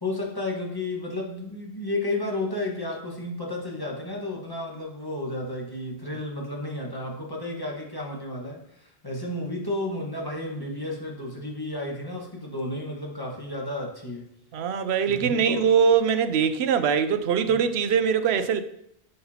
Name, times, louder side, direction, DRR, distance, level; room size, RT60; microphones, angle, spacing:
voice 1, 0.0-14.3 15.1-15.6 17.5-17.6, left 1 dB, 20° left, 1.5 m, -32 dB
voice 2, 14.5-18.6, right 7 dB, 75° right, 0.9 m, -22 dB
9.4 x 6.6 x 2.9 m
omnidirectional pair, 1.1 m